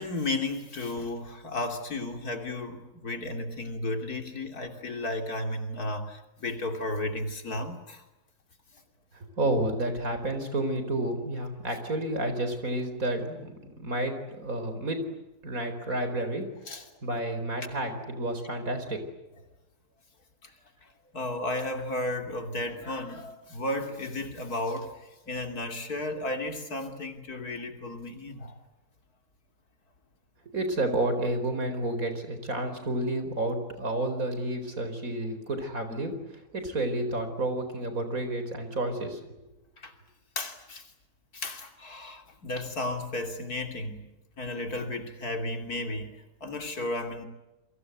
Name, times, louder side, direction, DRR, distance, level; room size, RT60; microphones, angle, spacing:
voice 1, 0.0-8.0 16.7-16.8 20.4-20.5 21.1-24.9 25.3-28.6 39.8-39.9 40.4-40.9 41.3-44.1 44.4-47.3, left 2 dB, 75° left, 5 dB, 3.5 m, -34 dB
voice 2, 9.4-15.0 15.4-16.4 17.0-19.0 30.5-36.1 36.5-39.2, right 1 dB, 60° right, 8 dB, 4.8 m, -30 dB
29.5 x 23.0 x 8.1 m, 0.99 s
omnidirectional pair, 1.6 m